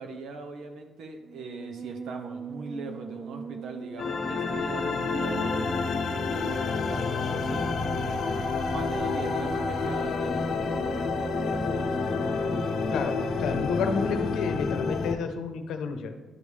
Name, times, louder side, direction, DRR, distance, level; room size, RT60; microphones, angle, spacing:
voice 1, 0.0-5.7 6.3-7.6 8.7-10.9, right 3 dB, 75° right, 4 dB, 1.1 m, -40 dB
Musical instrument, 1.2-14.2, right 5 dB, 40° right, 0.4 m, -40 dB
sound 1, 4.0-15.1, left 4 dB, 60° left, 0.7 m, -29 dB
voice 2, 12.9-16.1, left 5 dB, 85° left, 7 dB, 0.8 m, -30 dB
10.5 x 5.3 x 3.3 m, 1.2 s
cardioid pair, 90°, 0 cm